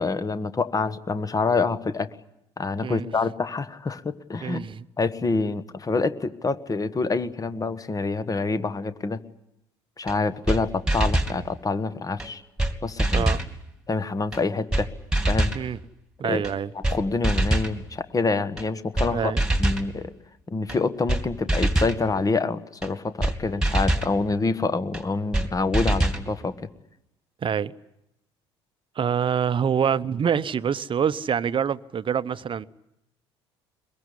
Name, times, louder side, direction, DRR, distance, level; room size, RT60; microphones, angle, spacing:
voice 1, 0.0-2.1 2.6-4.6 5.0-9.2 10.0-12.4 12.8-13.3 13.9-14.9 15.3-15.5 16.2-16.4 16.7-19.3 19.6-20.1 20.5-26.7, left 3 dB, 25° left, 1.4 m, -26 dB
voice 2, 4.4-4.8 13.1-13.4 15.5-15.8 16.2-16.7 19.1-19.4 27.4-27.7 29.0-32.7, right 7 dB, 35° right, 0.9 m, -25 dB
sound 1, 10.1-10.2 10.5-10.6 10.9-11.4 12.2-12.3 12.6-12.7 13.0-13.5 14.3-14.4 14.7-14.8 15.1-15.6 16.4-16.5 16.8-17.0 17.2-17.7 18.6-18.7 19.0-19.1 19.4-19.9 20.7-20.8 21.1-21.2 21.5-22.0 22.8-22.9 23.2-23.3 23.6-24.1 24.9-25.0 25.3-25.5 25.7-26.2, right 1 dB, 5° right, 2.8 m, -23 dB
22.5 x 22.0 x 9.9 m
hypercardioid pair, 60°, 15 cm